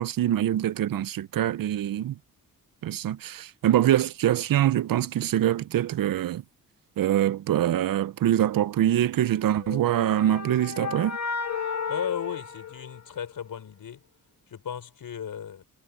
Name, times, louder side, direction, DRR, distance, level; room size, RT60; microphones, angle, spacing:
voice 1, 0.0-2.2 2.8-6.4 7.0-11.2, right 12 dB, 65° right, 0.6 m, -24 dB
sound 1, 9.6-13.5, left 6 dB, 45° left, 2.1 m, -33 dB
voice 2, 11.9-14.0 14.5-15.6, left 8 dB, 65° left, 5.2 m, -35 dB
wide cardioid pair, 135°, 36 cm